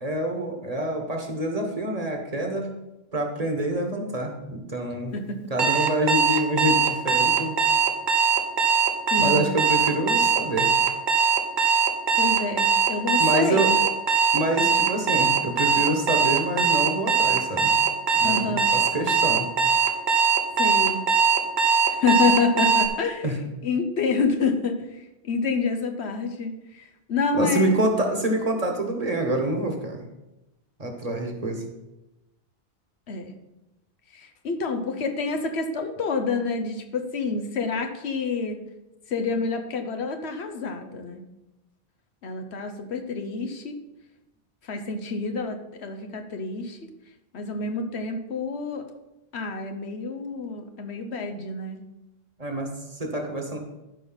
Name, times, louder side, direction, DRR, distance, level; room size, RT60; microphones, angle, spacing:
voice 1, 0.0-2.7 3.1-5.1 5.5-7.6 9.2-10.7 13.2-13.7 14.3-17.7 18.1-19.5 23.2-23.4 27.3-30.0 30.8-31.6 52.4-53.6, right 1 dB, 35° right, 3 dB, 1.4 m, -26 dB
Alarm, 5.6-22.9, right 5 dB, 50° right, 0.9 m, -21 dB
voice 2, 9.1-9.5 12.2-13.8 18.2-18.7 20.6-21.0 21.9-27.7 33.1-33.3 34.1-38.6 39.1-41.2 42.2-43.8 44.6-46.8 47.3-48.9 49.3-51.8, left 4 dB, 85° left, 6 dB, 1.2 m, -28 dB
13.0 x 5.3 x 4.0 m, 0.96 s
omnidirectional pair, 1.1 m